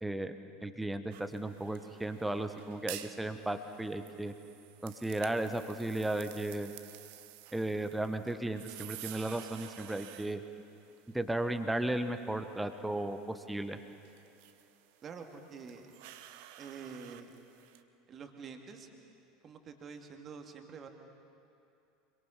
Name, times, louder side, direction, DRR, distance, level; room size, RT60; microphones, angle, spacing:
voice 1, 0.0-0.3 0.6-4.3 4.8-6.7 7.5-10.4 11.1-13.8, right 1 dB, 5° right, 9 dB, 1.2 m, -35 dB
sound 1, 1.1-17.8, right 13 dB, 55° right, 1.0 m, -52 dB
voice 2, 15.0-15.9 16.6-17.3 18.1-18.9 19.4-20.9, right 5 dB, 30° right, 4 dB, 2.2 m, -47 dB
26.0 x 23.0 x 5.8 m, 2.7 s
figure-of-eight pair, 75°, 0 cm